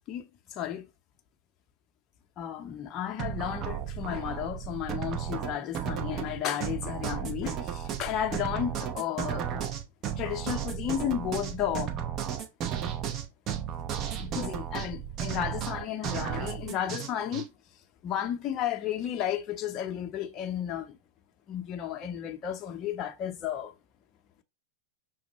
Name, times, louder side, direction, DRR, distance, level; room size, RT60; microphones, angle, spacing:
voice 1, 0.1-0.9 2.4-9.6 10.2-12.0 14.2-17.4 18.0-21.0 21.5-23.7, left 10 dB, 35° left, 0.6 m, -33 dB
sound 1, 3.2-17.5, right 9 dB, 35° right, 0.7 m, -34 dB
6.0 x 2.0 x 3.0 m
hypercardioid pair, 100°, 0 cm